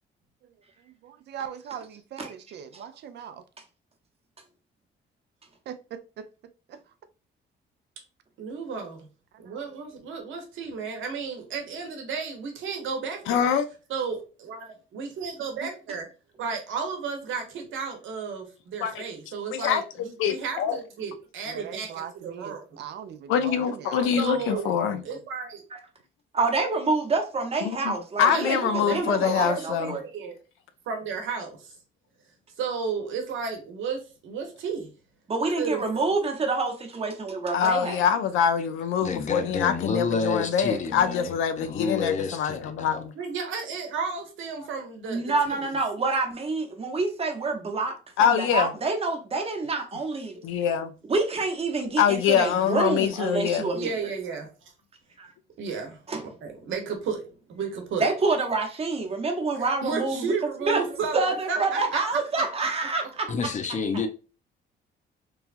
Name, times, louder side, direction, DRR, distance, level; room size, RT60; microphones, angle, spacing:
voice 1, 0.8-3.4 5.7-6.3 6.7-6.9 9.5-9.8 15.6-15.7 21.5-25.2, right 8 dB, 60° right, 0.4 m, -40 dB
voice 2, 8.4-9.0 9.4-13.5 13.9-14.2 14.4-14.6 14.9-16.0 16.4-22.8 24.2-24.7 25.0-25.6 28.2-30.4 30.9-31.7 32.6-34.9 35.6-35.8 43.1-45.7 53.7-54.7 55.6-56.0 56.4-57.2 57.5-58.1 59.8-62.0 62.3-62.4, right 5 dB, 80° right, 0.9 m, -33 dB
voice 3, 13.3-13.7 18.8-19.0 19.5-20.8 23.3-25.0 27.6-30.0 37.5-43.1 48.2-48.7 50.4-50.9 52.0-53.7, left 8 dB, 90° left, 0.4 m, -24 dB
voice 4, 26.3-30.0 35.3-38.0 45.1-47.9 48.2-50.4 51.1-53.9 55.2-55.3 56.1-56.3 58.0-60.3 60.6-60.8 61.1-63.3, right 3 dB, 30° right, 0.8 m, -27 dB
voice 5, 39.0-43.0 63.3-64.1, left 5 dB, 40° left, 0.5 m, -29 dB
3.1 x 2.3 x 2.4 m
cardioid pair, 90°, 20 cm